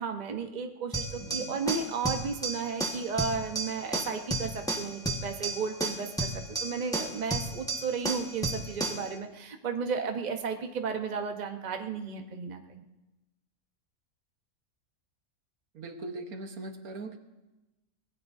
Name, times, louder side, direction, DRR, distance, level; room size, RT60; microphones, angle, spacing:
voice 1, 0.0-6.3 6.6-12.8, right 5 dB, 35° right, 4 dB, 1.0 m, -34 dB
sound 1, 0.9-9.1, right 2 dB, 5° left, 1.4 m, -33 dB
voice 2, 1.2-1.6 15.7-17.2, right 2 dB, 75° right, 5 dB, 1.7 m, -40 dB
25.0 x 19.0 x 2.7 m, 1.0 s
omnidirectional pair, 1.5 m